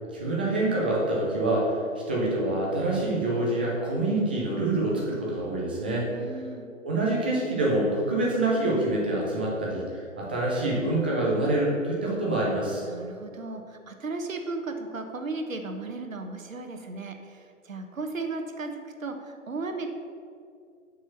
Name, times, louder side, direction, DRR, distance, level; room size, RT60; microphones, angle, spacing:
voice 1, 0.1-1.8 2.1-6.1 6.8-12.8, right 2 dB, 10° right, -4 dB, 0.4 m, -26 dB
voice 2, 6.1-6.7 12.9-19.9, right 3 dB, 75° right, 5 dB, 1.3 m, -35 dB
7.2 x 5.6 x 7.0 m, 2.4 s
figure-of-eight pair, 135°, 40 cm